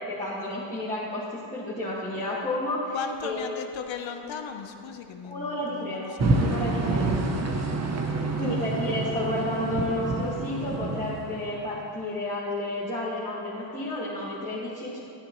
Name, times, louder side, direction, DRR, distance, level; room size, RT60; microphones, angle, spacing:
voice 1, 0.0-3.5 5.2-7.2 8.4-15.0, left 1 dB, 15° left, -10 dB, 1.8 m, -31 dB
voice 2, 2.9-6.3 7.1-7.4 8.4-8.7, left 6 dB, 65° left, 5 dB, 0.9 m, -37 dB
sound 1, 6.2-11.9, right 3 dB, 35° right, 0.8 m, -28 dB
11.5 x 9.6 x 3.1 m, 2.6 s
cardioid pair, 120°, 48 cm